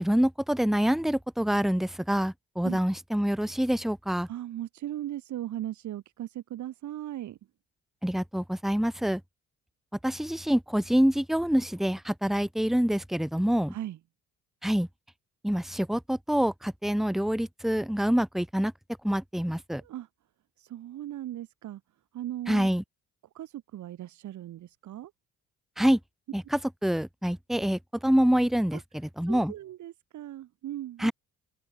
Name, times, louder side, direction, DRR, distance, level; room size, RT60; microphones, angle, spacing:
voice 1, 0.0-4.3 8.0-9.2 10.0-13.7 14.6-14.9 15.4-18.7 19.0-19.8 22.5-22.8 25.8-26.0 26.3-29.5 31.0-31.1, equal, ahead, 1.6 m, -26 dB
voice 2, 4.3-7.4 13.7-14.0 19.8-20.1 20.6-21.8 22.1-22.7 23.3-25.1 28.7-28.8 29.3-31.1, right 13 dB, 75° right, 1.9 m, -38 dB
cardioid pair, 90°, 30 cm